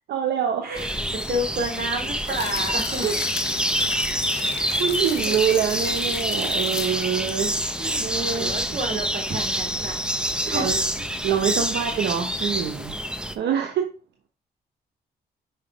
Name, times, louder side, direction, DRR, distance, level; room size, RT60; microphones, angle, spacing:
voice 1, 0.1-0.8 3.0-3.1 4.8-7.5 8.0-8.5 8.9-9.0 10.5-10.8 11.2-13.0 13.3-13.9, right 8 dB, 85° right, 4 dB, 1.0 m, -25 dB
voice 2, 0.6-3.1 6.5-6.9 7.8-8.0 8.3-10.7 10.9-11.0, right 1 dB, 60° right, 2 dB, 3.6 m, -31 dB
sound 1, 0.7-13.3, equal, 5° right, 0.9 m, -27 dB
sound 2, 2.3-8.5 8.9-9.0, left 11 dB, 80° left, 0.6 m, -36 dB
5.7 x 5.0 x 5.0 m, 0.38 s
cardioid pair, 70°, 17 cm